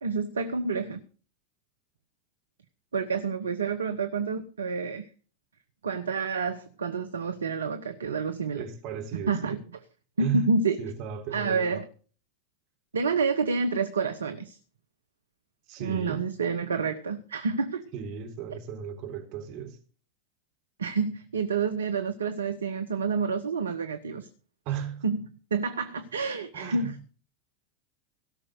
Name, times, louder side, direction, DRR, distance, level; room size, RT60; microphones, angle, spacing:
voice 1, 0.0-1.0 2.9-5.1 5.8-8.6 9.3-9.6 10.2-10.8 11.3-11.9 12.9-14.6 15.8-17.8 20.8-24.3 25.0-25.2 25.5-26.9, right 4 dB, 80° right, 1.0 m, -28 dB
voice 2, 8.5-9.6 10.2-10.5 10.8-11.8 15.7-16.3 17.9-19.8 24.7-25.1 26.5-27.1, right 8 dB, 50° right, 3.5 m, -35 dB
17.0 x 6.3 x 6.4 m
figure-of-eight pair, 85°, 0 cm